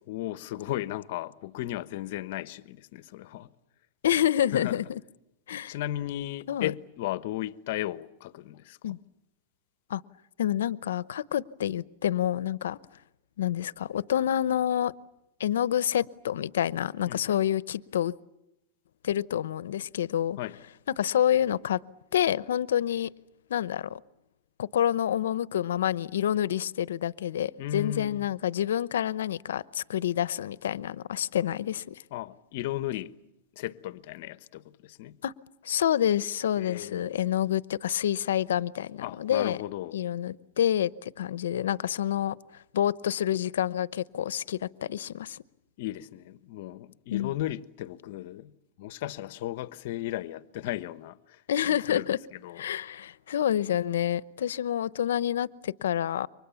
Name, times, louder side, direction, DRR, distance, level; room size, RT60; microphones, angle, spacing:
voice 1, 0.1-3.5 4.5-4.7 5.7-8.8 17.1-17.4 20.4-20.6 27.6-28.2 32.1-33.2 33.6-35.2 36.6-37.0 39.0-40.0 45.8-48.5 48.8-51.2 51.9-52.0 52.4-52.6, left 14 dB, 60° left, 1.2 m, -35 dB
voice 2, 4.0-5.0 5.5-5.8 6.5-6.7 8.8-9.0 9.9-10.0 10.4-12.8 13.4-14.9 15.4-18.1 19.0-20.4 21.0-21.8 22.1-23.1 23.5-24.0 24.6-32.0 35.2-35.3 35.6-39.6 39.9-42.4 42.7-45.4 47.1-47.3 51.5-52.2 52.6-56.3, left 10 dB, 90° left, 0.9 m, -28 dB
29.5 x 24.5 x 7.1 m
supercardioid pair, 150°, 0 cm